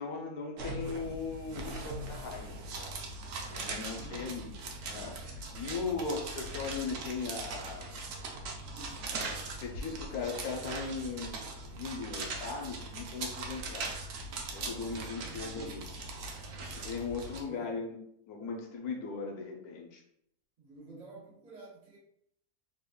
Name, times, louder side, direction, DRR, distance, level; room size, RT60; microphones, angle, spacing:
voice 1, 0.0-2.9 3.5-4.5 4.9-8.0 9.6-11.4 11.6-13.9 14.5-15.8 16.6-18.0 18.3-20.0, left 4 dB, 75° left, 2 dB, 1.1 m, -38 dB
sound 1, 0.6-17.4, right 3 dB, 65° right, 0.9 m, -40 dB
voice 2, 3.9-4.4 8.6-9.4 14.5-15.9 17.4-17.8 20.6-22.0, right 2 dB, 50° right, -6 dB, 1.3 m, -51 dB
3.5 x 3.2 x 2.2 m, 0.72 s
omnidirectional pair, 1.6 m